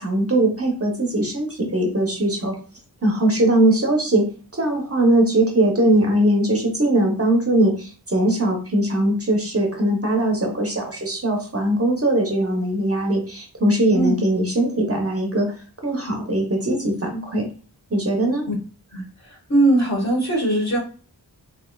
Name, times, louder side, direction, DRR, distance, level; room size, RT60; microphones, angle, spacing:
voice 1, 0.0-2.5 3.0-4.3 4.6-15.5 15.8-17.5 17.9-18.5, right 1 dB, 35° right, 1 dB, 0.8 m, -20 dB
voice 2, 13.9-14.3 18.9-19.0 19.3-20.8, right 1 dB, 40° left, -3 dB, 1.3 m, -20 dB
3.2 x 2.7 x 2.2 m, 0.38 s
wide cardioid pair, 70°, 40 cm